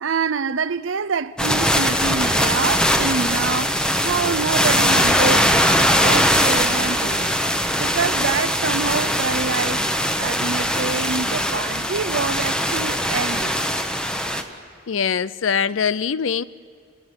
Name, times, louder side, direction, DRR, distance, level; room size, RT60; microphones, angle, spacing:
voice 1, 0.0-9.8 10.2-13.6, right 5 dB, 85° right, 0.6 m, -26 dB
sound 1, 1.4-14.4, equal, 5° left, 1.1 m, -20 dB
voice 2, 14.9-16.4, left 7 dB, 90° left, 0.5 m, -22 dB
28.5 x 13.5 x 9.8 m
head